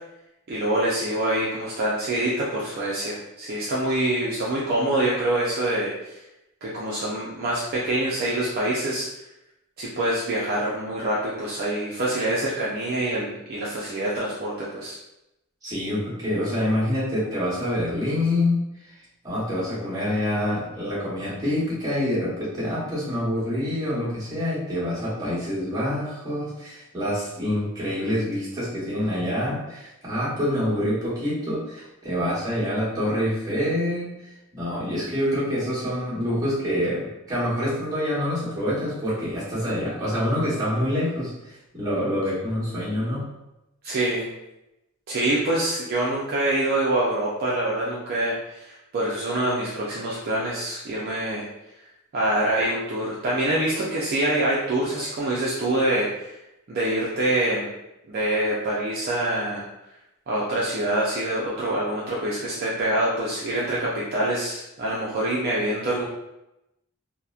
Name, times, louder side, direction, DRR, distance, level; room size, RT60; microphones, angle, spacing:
voice 1, 0.5-6.2 6.6-9.1 9.8-15.0 43.8-44.3 45.1-51.4 52.1-56.3 56.7-57.7 58.1-59.6 60.3-66.0, right 1 dB, 45° right, -6 dB, 0.4 m, -25 dB
voice 2, 15.6-18.6 19.2-34.1 34.5-43.3, left 1 dB, 20° right, -9 dB, 1.0 m, -26 dB
2.8 x 2.0 x 2.3 m, 0.91 s
head